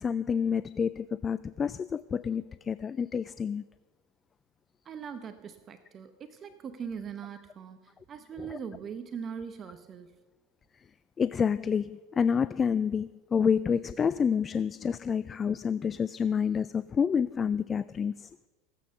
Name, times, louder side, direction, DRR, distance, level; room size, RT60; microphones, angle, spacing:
voice 1, 0.0-3.6 11.2-18.1, left 6 dB, 25° left, 16 dB, 0.3 m, -28 dB
voice 2, 4.8-10.2, right 7 dB, 35° right, 10 dB, 0.8 m, -41 dB
16.0 x 8.5 x 6.8 m, 1.3 s
supercardioid pair, 105°, 0 cm